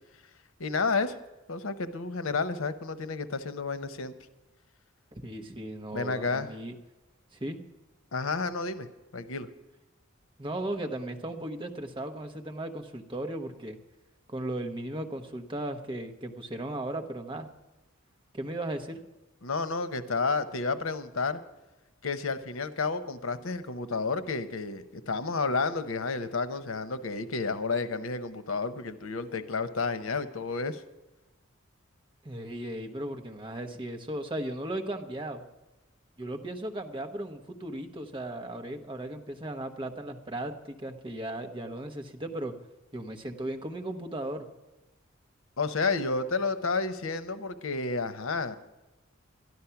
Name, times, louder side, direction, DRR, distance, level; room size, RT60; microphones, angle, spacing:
voice 1, 0.6-1.2 1.5-4.1 5.9-6.5 8.1-8.9 9.1-9.5 19.4-21.4 22.0-30.8 45.6-48.6, left 4 dB, 85° left, 12 dB, 0.8 m, -31 dB
voice 2, 5.1-6.7 7.4-7.6 10.4-13.8 14.3-17.5 18.3-19.0 32.2-35.4 36.2-42.5 42.9-44.5, right 1 dB, 25° right, 4 dB, 1.1 m, -36 dB
12.0 x 11.5 x 5.8 m, 1.0 s
head